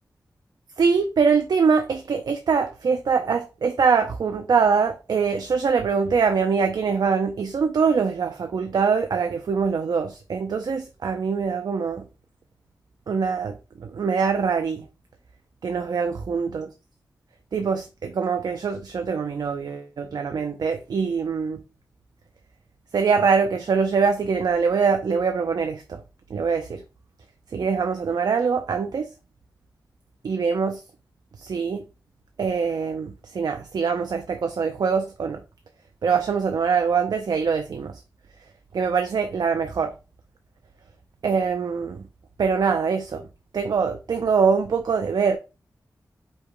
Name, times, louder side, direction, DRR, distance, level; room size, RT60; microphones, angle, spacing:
voice 1, 0.8-12.0 13.1-13.5 13.8-14.8 15.6-16.7 17.5-21.6 22.9-26.0 26.3-26.8 27.5-29.1 30.2-30.8 31.4-31.8 32.4-35.4 36.0-37.9 38.7-39.9 41.2-42.0 42.4-43.2 43.5-45.4, right 5 dB, 70° right, 0.5 m, -23 dB
5.1 x 2.2 x 4.7 m
wide cardioid pair, 145°, 7 cm